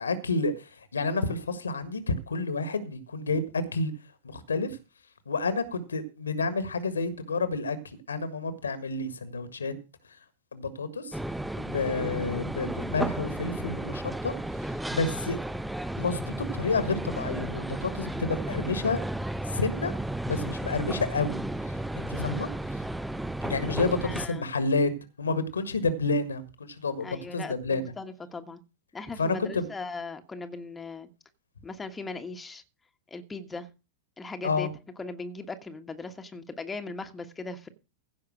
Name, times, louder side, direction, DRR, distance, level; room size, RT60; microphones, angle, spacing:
voice 1, 0.0-3.9 4.2-4.8 5.3-7.8 8.1-9.7 10.5-11.2 11.6-14.3 14.9-15.4 16.0-19.0 19.5-19.9 20.3-21.4 22.0-22.5 23.4-24.9 25.2-27.9 29.2-29.7 34.4-34.7, left 3 dB, 75° left, 1.6 m, -29 dB
sound 1, 11.1-24.3, right 1 dB, 5° right, 0.5 m, -33 dB
voice 2, 24.0-24.4 27.0-28.6 28.9-31.1 31.6-32.6 33.1-33.7 34.2-34.7 35.0-37.7, left 3 dB, 15° left, 1.3 m, -39 dB
15.5 x 5.7 x 6.3 m
figure-of-eight pair, 90°, 0 cm